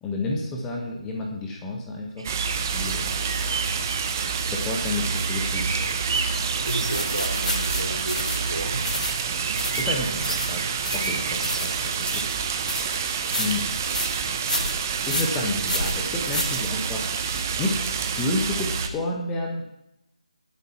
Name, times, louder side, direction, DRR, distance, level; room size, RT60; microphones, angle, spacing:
voice 1, 0.0-2.3 2.7-3.1 4.5-6.0 9.7-12.2 13.4-13.7 15.1-17.1 17.6-17.7 18.1-19.6, left 2 dB, 10° left, 0 dB, 1.4 m, -30 dB
sound 1, 2.2-18.9, right 6 dB, 20° right, 0.9 m, -28 dB
sound 2, 2.2-7.1 8.0-14.7, right 4 dB, 45° right, 1.1 m, -35 dB
sound 3, 6.6-17.1, left 1 dB, 85° left, 3.2 m, -31 dB
voice 2, 6.7-8.8, right 1 dB, 80° right, -1 dB, 4.6 m, -32 dB
20.0 x 8.2 x 4.6 m, 0.83 s
figure-of-eight pair, 160°, 4 cm